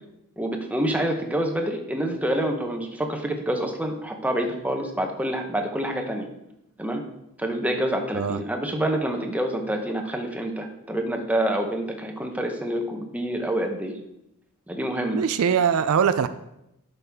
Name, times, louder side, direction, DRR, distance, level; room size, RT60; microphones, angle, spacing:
voice 1, 0.4-6.3 6.8-7.0 7.4-14.0 14.7-15.2, right 1 dB, 5° right, 3 dB, 0.8 m, -27 dB
voice 2, 15.1-16.3, right 7 dB, 65° right, 12 dB, 0.4 m, -22 dB
10.5 x 5.5 x 3.5 m, 0.84 s
head